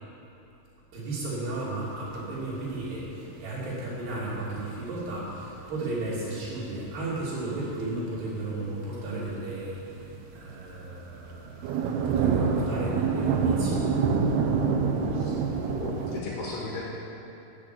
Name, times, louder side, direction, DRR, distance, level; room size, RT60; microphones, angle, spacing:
voice 1, 0.9-14.0, right 2 dB, 55° right, -7 dB, 4.7 m, -34 dB
sound 1, 1.4-1.5 1.7-9.0 9.3-9.5 9.9-16.2, right 5 dB, 80° right, 2.3 m, -28 dB
voice 2, 15.8-16.8, left 3 dB, 65° left, -4 dB, 3.5 m, -36 dB
13.5 x 8.1 x 8.3 m, 2.9 s
omnidirectional pair, 5.8 m